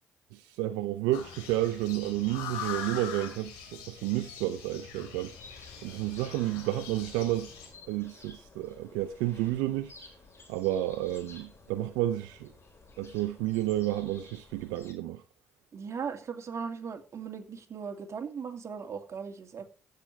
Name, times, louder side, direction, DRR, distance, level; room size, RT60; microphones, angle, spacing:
voice 1, 0.3-5.3 5.8-7.5 7.9-9.9 10.5-12.5 13.0-15.2, right 15 dB, 85° right, 0.5 m, -31 dB
sound 1, 1.1-7.7, left 7 dB, 90° left, 3.0 m, -42 dB
sound 2, 5.3-14.9, left 3 dB, 40° left, 4.5 m, -54 dB
voice 2, 15.7-19.7, right 6 dB, 50° right, 2.4 m, -38 dB
15.5 x 6.8 x 3.2 m
hypercardioid pair, 50°, 6 cm